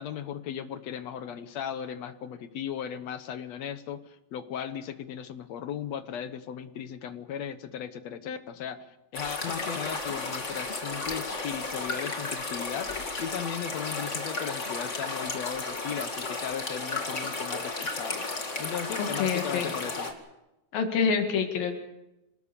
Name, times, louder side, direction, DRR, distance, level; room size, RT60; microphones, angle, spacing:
voice 1, 0.0-12.9 13.2-18.3 18.6-20.1, left 8 dB, 60° left, 10 dB, 2.0 m, -37 dB
sound 1, 9.1-20.1, left 3 dB, 25° left, 2.1 m, -33 dB
voice 2, 19.0-19.7 20.7-21.8, left 6 dB, 90° left, 4 dB, 3.8 m, -27 dB
27.0 x 19.0 x 6.8 m, 0.96 s
omnidirectional pair, 4.0 m